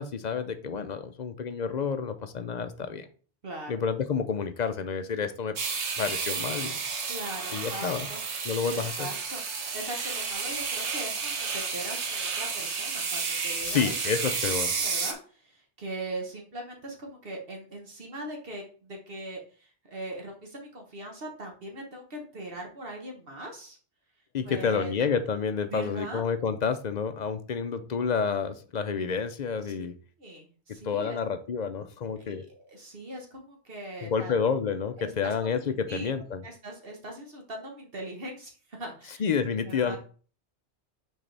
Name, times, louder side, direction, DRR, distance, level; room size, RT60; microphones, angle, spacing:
voice 1, 0.0-3.1 3.7-5.5 6.0-6.8 7.5-8.1 8.4-9.1 13.6-14.7 24.3-29.9 30.8-32.4 34.0-36.4 39.2-40.0, left 6 dB, 50° left, 9 dB, 0.5 m, -29 dB
voice 2, 3.4-3.8 7.1-8.2 8.7-9.4 9.7-14.0 14.2-23.8 24.4-25.0 25.7-26.3 29.8-29.9 30.2-31.2 32.2-34.3 35.0-35.6 35.9-39.3 39.6-40.0, right 1 dB, 55° right, 1 dB, 1.5 m, -40 dB
sound 1, 5.6-15.1, right 5 dB, 90° right, 1.2 m, -31 dB
6.2 x 4.5 x 3.3 m, 0.40 s
omnidirectional pair, 1.1 m